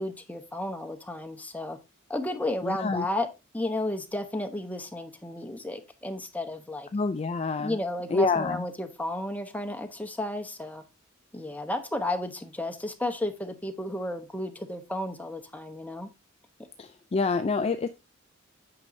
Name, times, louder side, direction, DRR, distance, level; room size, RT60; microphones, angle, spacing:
voice 1, 0.0-1.8 2.1-3.3 3.5-6.9 7.6-10.8 11.3-16.1, left 1 dB, 10° left, 0.9 m, -33 dB
voice 2, 2.6-3.0 6.9-7.7 8.1-8.6 16.8-17.9, left 4 dB, 30° left, 0.3 m, -27 dB
8.7 x 6.2 x 2.6 m
head